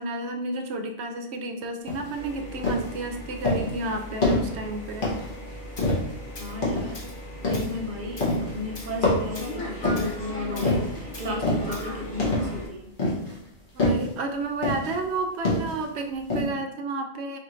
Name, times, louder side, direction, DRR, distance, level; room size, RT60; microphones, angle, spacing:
voice 1, 0.0-5.1 13.7-17.4, right 2 dB, 85° right, 5 dB, 0.9 m, -31 dB
sound 1, 1.9-2.2 2.6-2.9 3.4-3.8 4.2-4.6 5.0-5.4 5.8-6.2 6.6-7.0 7.4-7.8 8.2-8.6 9.0-10.2 10.6-11.0 11.4-11.8 12.2-12.6 13.0-13.4 13.8-14.1 14.6-15.0 15.4-15.8 16.3-16.5, left 1 dB, 55° left, 1.3 m, -25 dB
sound 2, 2.1-12.7, left 1 dB, 80° left, 2.0 m, -38 dB
Tools, 5.8-5.9 6.4-6.6 6.9-7.2 7.5-7.7 8.2-8.4 8.7-9.0 9.3-9.6 10.0-10.1 10.6-10.8 11.1-11.3 11.7-11.9, left 2 dB, 30° left, 0.5 m, -43 dB
voice 2, 6.4-7.1 7.5-12.9, left 2 dB, 50° right, 0 dB, 0.9 m, -34 dB
5.0 x 2.5 x 3.1 m, 0.75 s
omnidirectional pair, 1.1 m